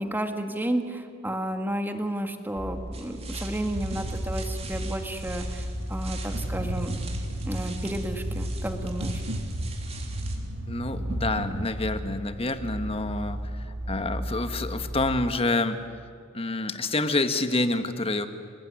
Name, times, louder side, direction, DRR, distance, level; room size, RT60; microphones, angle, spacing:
voice 1, 0.0-7.0 7.4-9.2, right 1 dB, 10° right, 6 dB, 1.9 m, -32 dB
sound 1, 2.6-15.3, equal, 60° right, 2.2 m, -35 dB
sound 2, 2.9-10.4, right 4 dB, 30° right, 3.5 m, -44 dB
sound 3, 3.7-11.6, right 1 dB, 85° right, 1.6 m, -35 dB
voice 2, 10.7-15.8 16.3-18.3, left 2 dB, 30° left, 9 dB, 1.4 m, -28 dB
28.0 x 19.0 x 9.8 m, 2.2 s
head